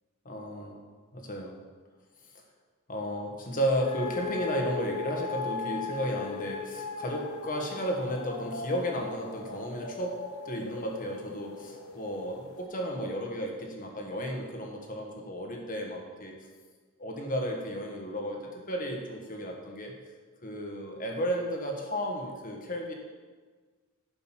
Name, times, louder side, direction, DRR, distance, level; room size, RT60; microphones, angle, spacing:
voice 1, 0.2-0.9 1.1-1.6 2.9-10.2 10.4-16.4 17.0-19.9 20.4-22.9, equal, 40° left, 1 dB, 1.5 m, -33 dB
sound 1, 3.8-12.6, left 5 dB, 75° left, 0.9 m, -38 dB
10.5 x 5.3 x 5.8 m, 1.5 s
head